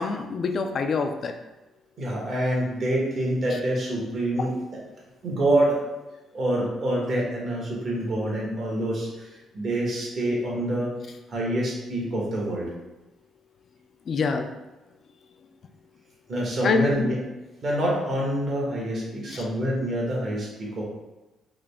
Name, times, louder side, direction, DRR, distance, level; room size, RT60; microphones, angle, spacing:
voice 1, 0.0-1.4 3.5-3.6 14.1-14.5 16.6-17.1 19.3-19.5, left 4 dB, 50° left, 5 dB, 0.3 m, -26 dB
voice 2, 2.0-4.5 5.2-5.8 6.3-10.9 11.3-12.7 16.3-17.1 17.6-20.8, right 1 dB, 55° right, -3 dB, 1.3 m, -26 dB
3.7 x 2.1 x 3.5 m, 1.1 s
cardioid pair, 90°, 0 cm